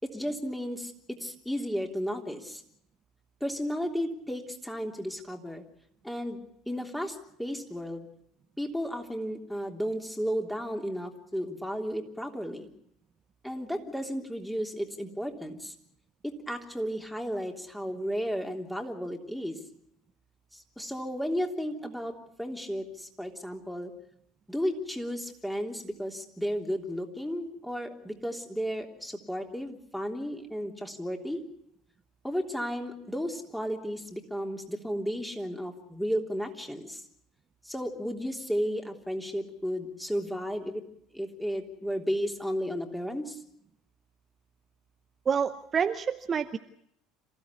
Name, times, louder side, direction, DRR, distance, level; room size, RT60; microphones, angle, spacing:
voice 1, 0.0-2.6 3.4-5.6 6.0-6.4 6.7-8.1 8.6-12.7 13.4-15.7 16.2-19.6 20.5-23.9 24.5-31.4 32.2-37.0 37.6-40.8 41.1-43.4, equal, 5° left, 3 dB, 3.3 m, -33 dB
voice 2, 45.3-46.6, right 7 dB, 30° right, 9 dB, 0.9 m, -28 dB
27.0 x 15.5 x 8.4 m, 0.74 s
figure-of-eight pair, 65°, 0 cm